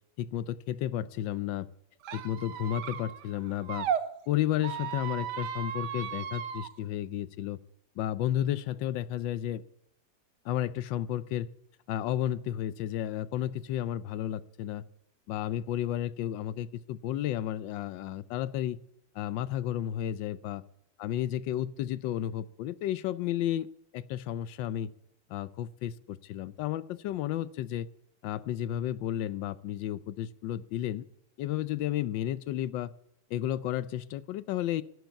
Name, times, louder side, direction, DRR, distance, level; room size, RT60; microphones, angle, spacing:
voice 1, 0.2-1.7 2.1-3.9 4.3-7.6 8.0-9.6 10.4-11.5 11.9-14.8 15.3-18.8 19.1-20.6 21.0-23.7 23.9-24.9 25.3-27.9 28.2-31.0 31.4-32.9 33.3-34.8, left 12 dB, 85° left, 18 dB, 1.4 m, -32 dB
Squeak, 2.0-4.0 4.6-6.7, right 8 dB, 70° right, 1.4 m, -35 dB
11.0 x 8.1 x 8.2 m, 0.75 s
omnidirectional pair, 2.0 m